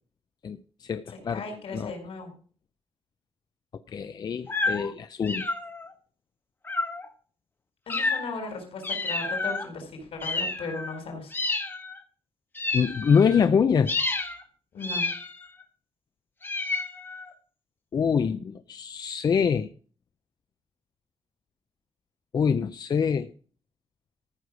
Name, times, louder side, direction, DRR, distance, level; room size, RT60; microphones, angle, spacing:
voice 1, 0.4-1.4 1.7-1.9 3.9-5.5 12.7-13.9 17.9-19.7 22.3-23.3, left 6 dB, 45° left, 11 dB, 0.5 m, -25 dB
voice 2, 1.3-2.3 7.9-11.3 14.7-15.1, left 3 dB, 75° left, 4 dB, 4.5 m, -36 dB
sound 1, 4.5-4.9 5.2-5.9 6.7-7.1 7.9-8.5 8.8-9.7 10.2-11.0 11.3-12.0 12.5-13.5 13.9-14.4 14.8-15.6 16.4-17.3, left 3 dB, 20° left, 1.1 m, -30 dB
14.5 x 6.5 x 6.1 m, 0.42 s
wide cardioid pair, 180°, 10 cm